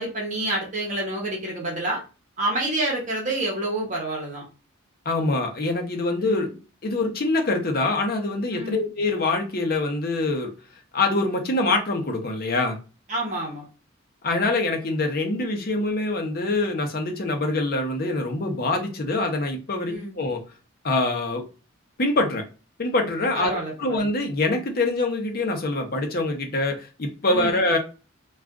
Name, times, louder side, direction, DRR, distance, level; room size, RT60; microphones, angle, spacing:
voice 1, 0.0-2.0 2.4-4.4 6.2-6.5 8.5-8.8 13.1-13.7 19.8-20.2 23.3-24.1 27.3-27.6, right 1 dB, 35° right, -2 dB, 0.9 m, -28 dB
voice 2, 5.1-6.5 6.8-10.5 10.9-12.8 14.2-20.4 20.8-21.4 22.0-22.4 22.8-27.8, left 2 dB, 45° left, 3 dB, 0.7 m, -24 dB
2.4 x 2.3 x 3.5 m, 0.32 s
head